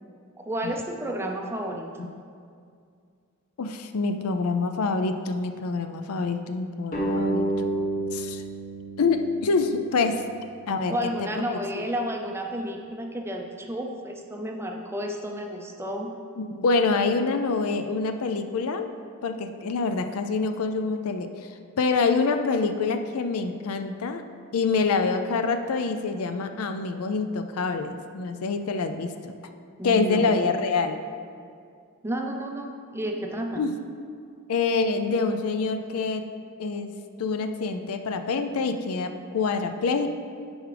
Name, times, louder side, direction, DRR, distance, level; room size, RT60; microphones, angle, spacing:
voice 1, 0.4-2.1 10.9-16.1 29.8-30.6 32.0-33.7, equal, 10° right, 2 dB, 0.5 m, -31 dB
voice 2, 3.6-7.5 8.1-8.4 9.0-10.2 10.7-10.9 11.2-11.8 16.4-18.9 19.2-21.3 21.8-24.2 24.5-29.3 29.8-31.0 33.6-33.7 34.5-36.2 36.6-36.9 37.2-40.1, left 4 dB, 80° left, 8 dB, 0.5 m, -26 dB
sound 1, 6.9-10.1, right 2 dB, 40° left, 1.3 m, -29 dB
10.0 x 4.7 x 3.3 m, 2.3 s
head